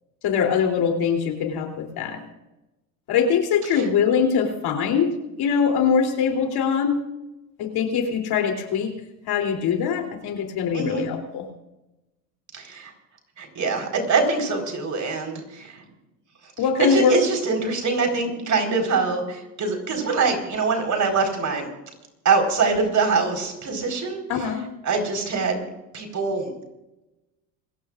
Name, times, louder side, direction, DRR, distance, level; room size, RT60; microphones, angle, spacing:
voice 1, 0.2-2.3 3.1-7.0 7.6-8.9 9.3-11.5 16.6-17.2 18.0-18.1 24.3-24.7, left 6 dB, 55° left, 3 dB, 3.4 m, -22 dB
voice 2, 10.7-11.0 12.5-12.9 13.4-15.8 16.8-21.7 22.2-24.2 24.8-25.6 25.9-26.5, right 4 dB, 40° right, 3 dB, 4.6 m, -24 dB
27.0 x 15.0 x 2.5 m, 0.97 s
hypercardioid pair, 75°, 45 cm